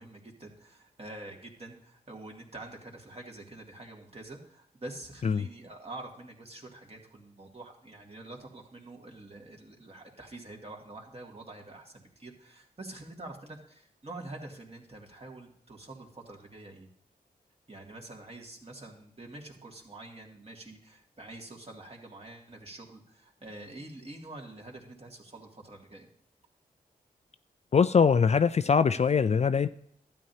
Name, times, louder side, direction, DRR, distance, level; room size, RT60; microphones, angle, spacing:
voice 1, 0.0-16.9 17.7-26.1, right 2 dB, 35° right, 0 dB, 2.3 m, -46 dB
voice 2, 27.7-29.7, left 6 dB, 40° left, 13 dB, 0.4 m, -22 dB
12.5 x 9.2 x 2.8 m, 0.69 s
cardioid pair, 50°, 17 cm